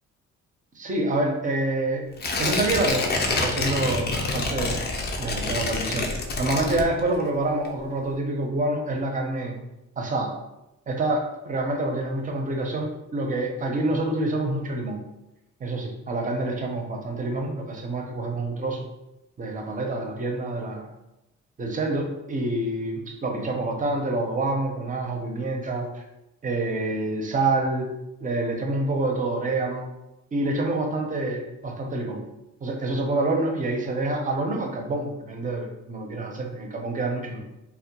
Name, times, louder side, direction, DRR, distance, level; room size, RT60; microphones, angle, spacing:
voice 1, 0.8-2.1 2.4-4.9 5.2-9.6 10.0-10.3 10.9-15.0 15.6-18.8 19.4-20.9 21.6-26.0 26.4-27.9 28.2-29.9 30.3-32.2 32.6-37.4, right 2 dB, 25° right, 3 dB, 0.5 m, -27 dB
Tearing, 2.2-7.3 7.6-7.7, left 3 dB, 35° left, 0.4 m, -27 dB
2.2 x 2.0 x 2.8 m, 0.93 s
cardioid pair, 90°, 30 cm